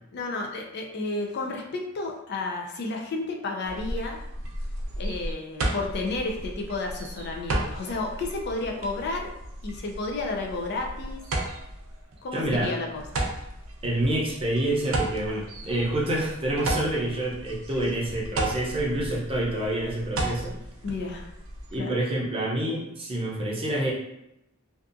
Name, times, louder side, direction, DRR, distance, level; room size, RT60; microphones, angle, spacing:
voice 1, 0.1-4.2 5.0-9.3 9.6-11.2 12.2-13.2 20.8-21.3 21.8-21.9, left 3 dB, 55° left, 2 dB, 0.4 m, -32 dB
sound 1, 3.6-21.8, right 1 dB, 90° right, 0.5 m, -34 dB
voice 2, 12.3-12.7 13.8-20.6 21.7-23.9, right 1 dB, 30° right, -4 dB, 0.6 m, -27 dB
2.6 x 2.3 x 2.5 m, 0.84 s
head